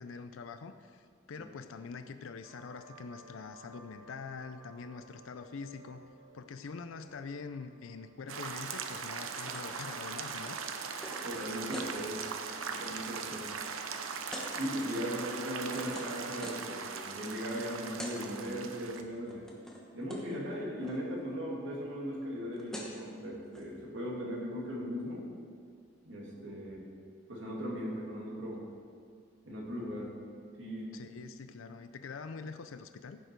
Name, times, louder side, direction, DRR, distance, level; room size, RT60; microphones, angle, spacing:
voice 1, 0.0-6.0 6.3-10.6 15.0-15.2 30.9-33.2, left 4 dB, 80° left, 10 dB, 0.5 m, -44 dB
sound 1, 2.4-13.7, right 2 dB, 25° right, 2.1 m, -59 dB
sound 2, 8.3-19.0, right 5 dB, 85° right, 0.7 m, -40 dB
sound 3, 9.5-9.8 10.0-11.9 12.4-12.6 12.9-13.3 14.3-14.5 15.1-16.7 17.6-17.7 17.9-18.2 18.4-19.0 19.3-19.8 20.1-20.3 20.5-21.0 22.2-22.3 22.5-23.0 23.5-23.7, left 1 dB, 5° left, 1.1 m, -46 dB
voice 2, 11.2-12.2 12.7-13.6 14.6-19.4 19.9-25.2 26.0-26.9 27.3-28.6 29.4-30.1 30.6-30.9, equal, 65° right, -4 dB, 2.5 m, -38 dB
15.0 x 6.6 x 4.6 m, 2.1 s
head